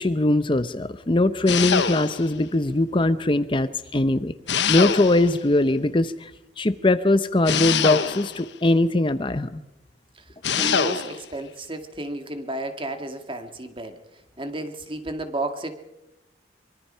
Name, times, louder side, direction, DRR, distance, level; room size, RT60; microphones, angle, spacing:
voice 1, 0.0-4.3 4.7-6.3 6.6-9.6, left 2 dB, 30° left, 12 dB, 0.7 m, -21 dB
sound 1, 1.5-2.4 4.5-5.4 7.4-8.5 10.4-11.2, left 7 dB, 85° left, 1.1 m, -24 dB
voice 2, 10.6-14.0 14.4-15.8, right 2 dB, 30° right, 7 dB, 2.1 m, -32 dB
24.5 x 23.5 x 5.6 m, 0.90 s
head